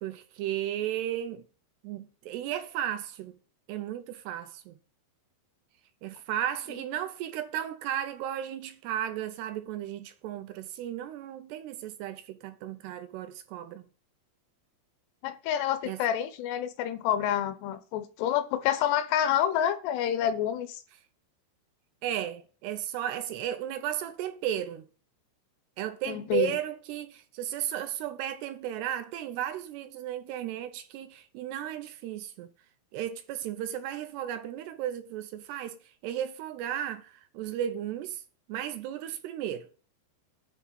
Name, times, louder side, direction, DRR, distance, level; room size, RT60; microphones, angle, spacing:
voice 1, 0.0-1.4 1.8-3.3 3.7-4.7 6.0-13.8 15.9-16.0 22.0-24.8 25.8-32.5 32.9-35.8 36.0-38.2 38.5-39.7, right 11 dB, 80° right, 2.5 m, -34 dB
voice 2, 15.2-20.8 26.1-26.5, left 10 dB, 85° left, 2.6 m, -28 dB
9.9 x 3.7 x 6.8 m
omnidirectional pair, 5.0 m